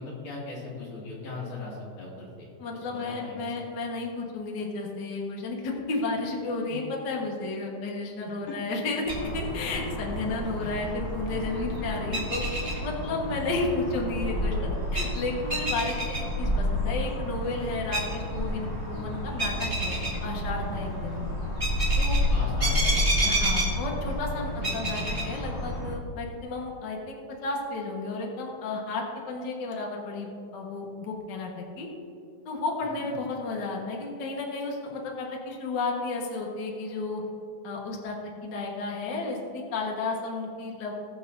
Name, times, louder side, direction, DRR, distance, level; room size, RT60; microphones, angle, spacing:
voice 1, 0.0-2.5 2.8-3.5 6.7-6.8 8.2-8.5 10.6-10.7 18.0-18.1 21.1-21.2 22.3-23.2 24.6-24.8 33.0-33.1, left 3 dB, 85° left, -6 dB, 4.0 m, -39 dB
voice 2, 2.6-9.0 9.3-12.4 12.8-21.2 22.0-22.2 23.2-31.5 31.8-31.9 32.4-37.2 37.6-38.2 38.4-40.9, left 3 dB, 45° left, -1 dB, 1.6 m, -32 dB
sound 1, 9.1-25.9, equal, 15° right, 1.8 m, -29 dB
20.0 x 6.9 x 2.7 m, 2.5 s
omnidirectional pair, 3.4 m